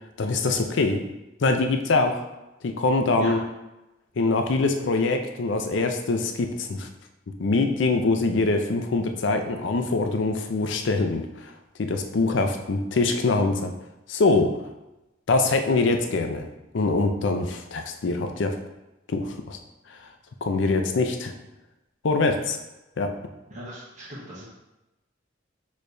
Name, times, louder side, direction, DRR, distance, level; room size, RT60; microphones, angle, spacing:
voice 1, 0.2-1.0 1.4-2.2 2.6-3.4 4.2-6.9 7.4-11.5 11.8-13.7 14.1-14.6 15.3-16.5 16.7-18.6 19.1-19.6 19.9-20.0 20.4-21.3 22.0-22.6 23.0-23.1, left 3 dB, 65° left, 5 dB, 0.5 m, -24 dB
voice 2, 23.5-24.4, equal, 40° right, -7 dB, 1.1 m, -38 dB
6.5 x 3.1 x 2.6 m, 0.98 s
head